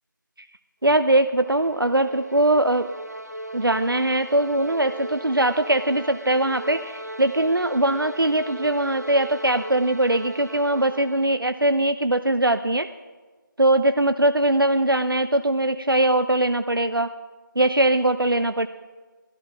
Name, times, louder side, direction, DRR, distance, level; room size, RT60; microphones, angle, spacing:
voice 1, 0.8-2.9 3.5-12.9 13.6-17.1 17.6-18.7, right 1 dB, 90° right, 10 dB, 0.7 m, -21 dB
sound 1, 1.1-11.5, right 1 dB, 50° right, 1.1 m, -39 dB
16.0 x 12.5 x 6.0 m, 1.3 s
figure-of-eight pair, 175°, 11 cm